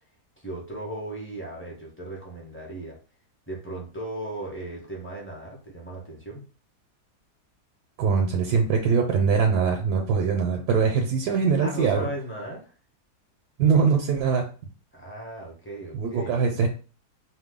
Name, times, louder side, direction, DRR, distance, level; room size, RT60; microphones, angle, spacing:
voice 1, 0.4-3.0 3.5-6.4 11.6-12.7 14.9-16.6, right 1 dB, 10° left, -3 dB, 0.6 m, -36 dB
voice 2, 8.0-12.0 13.6-14.5 15.9-16.7, right 5 dB, 75° right, 2 dB, 1.1 m, -22 dB
2.9 x 2.2 x 3.5 m, 0.37 s
omnidirectional pair, 1.8 m